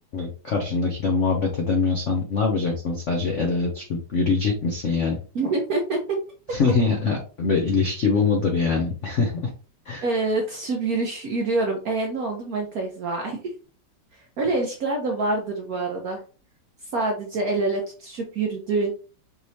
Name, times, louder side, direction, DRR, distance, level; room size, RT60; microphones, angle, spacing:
voice 1, 0.1-5.2 6.5-9.5 9.9-10.0, left 4 dB, 80° left, 1 dB, 0.6 m, -23 dB
voice 2, 5.3-6.2 6.5-6.6 10.0-13.5 14.1-16.2 16.8-18.9, right 3 dB, 65° right, 2 dB, 0.9 m, -26 dB
5.2 x 3.1 x 2.7 m, 0.37 s
omnidirectional pair, 2.4 m